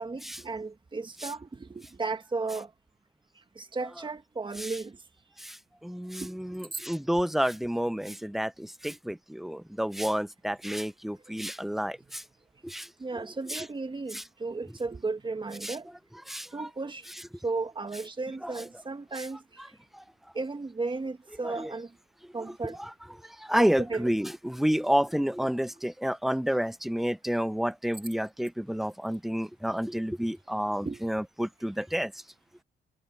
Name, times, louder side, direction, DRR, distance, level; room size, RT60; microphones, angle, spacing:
voice 1, 0.0-2.7 3.5-5.0 6.2-6.3 6.7-6.8 13.0-15.9 16.5-17.0 17.4-19.4 20.3-21.9 22.3-22.8 23.6-24.1 30.8-31.1, right 3 dB, 25° right, 1.7 m, -34 dB
voice 2, 5.4-12.2 12.6-12.9 13.5-13.6 14.1-14.2 15.6-15.8 16.3-16.7 18.4-18.5 19.2-19.3 19.9-20.0 21.4-21.7 22.8-22.9 23.2-32.1, equal, ahead, 0.6 m, -30 dB
cardioid pair, 90°, 20 cm